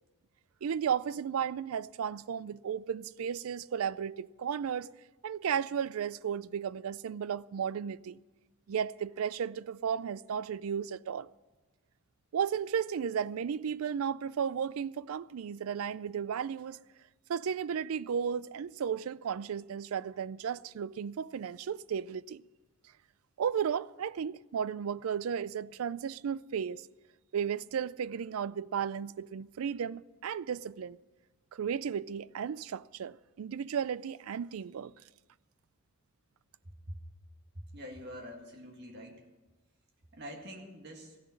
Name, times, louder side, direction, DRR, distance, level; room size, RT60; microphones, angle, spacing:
voice 1, 0.6-4.9 5.2-8.2 8.7-11.3 12.3-16.8 17.3-22.4 23.4-26.8 27.3-31.0 31.5-34.9, right 7 dB, 90° right, 0.4 m, -34 dB
voice 2, 37.5-39.2 40.1-41.2, equal, 55° right, 2.0 m, -45 dB
15.0 x 7.0 x 9.7 m
head